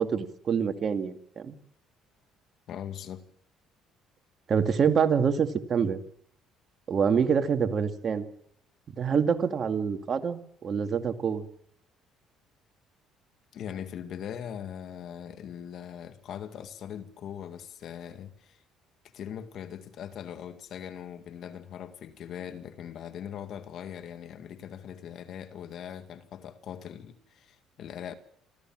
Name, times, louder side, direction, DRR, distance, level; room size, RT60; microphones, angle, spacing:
voice 1, 0.0-1.6 4.5-6.0 6.9-8.2 9.0-11.4, right 6 dB, 45° right, 2.1 m, -26 dB
voice 2, 2.7-3.2 13.5-18.6 19.1-28.1, left 9 dB, 60° left, 2.0 m, -40 dB
27.0 x 14.5 x 7.6 m
cardioid pair, 95°, 0 cm